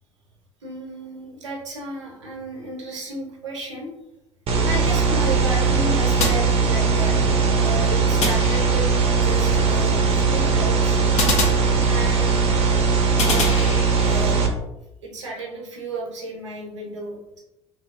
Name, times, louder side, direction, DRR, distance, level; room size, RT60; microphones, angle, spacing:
voice 1, 0.6-3.9 4.6-7.2 7.6-8.9 9.2-11.0 11.8-12.5 13.3-14.4 15.0-17.4, right 2 dB, 80° right, 0 dB, 0.7 m, -33 dB
sound 1, 4.5-14.5, right 4 dB, 40° right, 0.6 m, -19 dB
sound 2, 6.2-7.1 8.2-9.1 11.2-12.3 13.2-14.3, left 3 dB, 45° left, 0.8 m, -27 dB
3.0 x 2.7 x 2.5 m, 0.91 s
hypercardioid pair, 65°, 15 cm